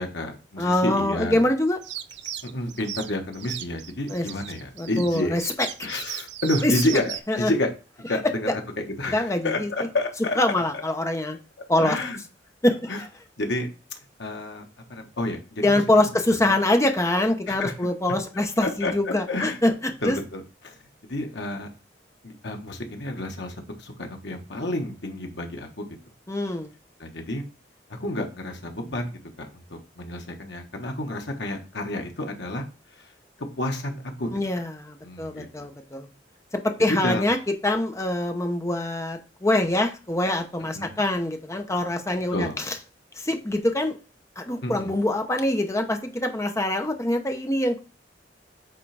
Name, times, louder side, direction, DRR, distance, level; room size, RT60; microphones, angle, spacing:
voice 1, 0.0-1.5 2.4-5.4 5.8-7.7 8.1-10.4 11.8-12.2 12.9-13.0 13.4-13.7 14.2-15.8 16.5-16.6 17.5-17.7 18.6-19.6 20.0-21.7 22.2-25.9 27.0-27.5 27.9-32.6 32.9-33.1 33.4-34.3 35.0-35.7 36.8-37.2 40.7-41.0 42.3-42.6 44.6-44.9, left 1 dB, 75° left, 3 dB, 1.4 m, -30 dB
voice 2, 0.6-1.8 4.1-4.2 4.8-5.4 6.6-6.7 7.3-7.5 9.1-9.7 10.4-11.4 11.7-12.0 12.6-12.9 15.6-19.7 20.0-20.2 26.3-26.7 34.3-36.1 36.5-37.4 37.6-42.7 43.2-44.0 44.4-47.8, left 1 dB, 15° left, 5 dB, 0.9 m, -24 dB
sound 1, 1.8-7.2, right 11 dB, 70° right, 0.5 m, -36 dB
8.5 x 3.8 x 3.4 m, 0.32 s
head